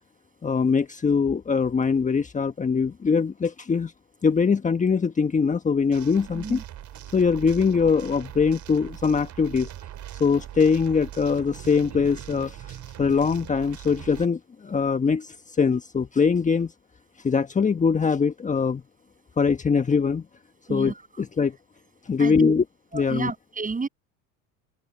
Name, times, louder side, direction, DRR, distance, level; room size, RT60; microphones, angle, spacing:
voice 1, 0.4-3.9 4.2-6.6 7.1-9.7 10.2-16.7 17.2-18.8 19.4-20.2 20.7-21.6 22.0-22.6 22.9-23.3, left 5 dB, 20° left, 1.4 m, -22 dB
sound 1, 5.9-14.3, right 12 dB, 45° right, 4.4 m, -41 dB
voice 2, 20.7-21.0 22.2-22.5 22.9-23.9, right 4 dB, 20° right, 7.0 m, -31 dB
hypercardioid pair, 80°, 39 cm